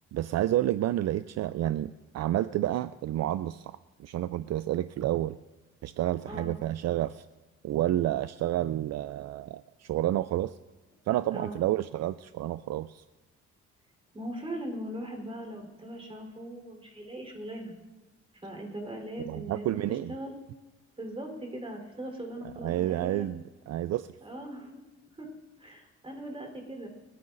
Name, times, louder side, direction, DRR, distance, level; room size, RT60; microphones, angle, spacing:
voice 1, 0.1-5.4 5.8-7.2 7.6-10.6 11.1-13.0 19.3-20.1 22.6-24.1, right 13 dB, 60° right, 13 dB, 0.4 m, -30 dB
voice 2, 6.3-6.6 11.3-11.6 14.1-17.8 18.3-20.3 21.0-23.3 24.2-24.7 25.2-25.3 25.6-26.9, right 1 dB, 20° right, 1 dB, 3.8 m, -40 dB
28.5 x 9.7 x 2.6 m, 1.1 s
cardioid pair, 105°, 30 cm